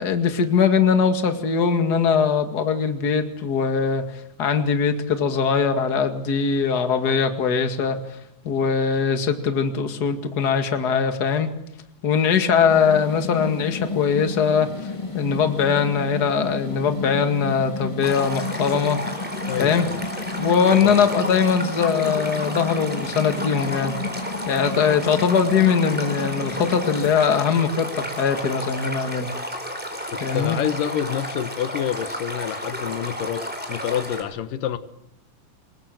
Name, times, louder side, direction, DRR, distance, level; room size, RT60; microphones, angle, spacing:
voice 1, 0.0-4.1 4.4-8.0 8.4-11.5 12.0-14.7 15.1-19.0 19.6-19.9 20.3-24.0 24.5-29.3 30.2-30.6, left 6 dB, 35° left, 7 dB, 2.1 m, -21 dB
sound 1, 12.7-28.0, left 4 dB, 15° left, 1.2 m, -32 dB
Stream, 18.0-34.2, equal, 5° right, 4.0 m, -32 dB
voice 2, 19.5-20.0 20.8-21.2 30.1-34.8, left 10 dB, 90° left, 12 dB, 2.9 m, -28 dB
26.5 x 21.5 x 7.8 m, 0.81 s
omnidirectional pair, 3.7 m